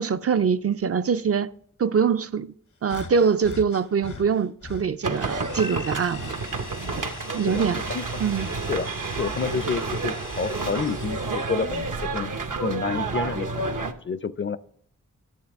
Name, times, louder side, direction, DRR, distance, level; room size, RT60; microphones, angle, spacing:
voice 1, 0.0-1.5 1.8-2.5 2.8-6.4 6.9-7.1 7.3-7.8 8.2-8.5, right 6 dB, 50° right, 0.4 m, -23 dB
sound 1, 2.9-4.9 5.4-8.7 9.0-10.5 11.3-11.5 12.4-12.6, left 4 dB, 70° left, 0.8 m, -43 dB
sound 2, 5.0-13.9, right 4 dB, 80° right, 0.9 m, -30 dB
sound 3, 5.1-11.8, left 4 dB, 85° left, 1.6 m, -41 dB
voice 2, 7.5-8.1 8.7-8.9 9.2-12.3 12.6-14.6, left 5 dB, 40° left, 0.4 m, -29 dB
11.0 x 7.2 x 3.5 m
cardioid pair, 40°, 31 cm